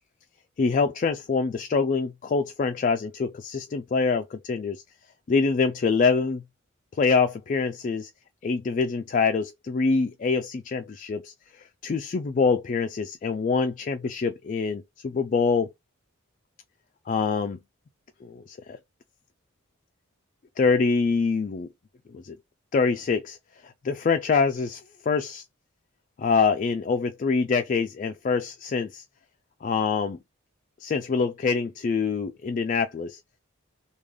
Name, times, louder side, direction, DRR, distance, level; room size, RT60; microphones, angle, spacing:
voice 1, 0.6-4.8 5.3-6.4 6.9-8.1 8.4-15.7 17.1-17.6 18.2-18.8 20.6-21.7 22.1-22.4 22.7-23.4 23.6-25.4 26.2-29.0 29.6-30.2 30.8-33.2, left 4 dB, 40° left, 0.3 m, -25 dB
3.3 x 2.3 x 3.6 m
head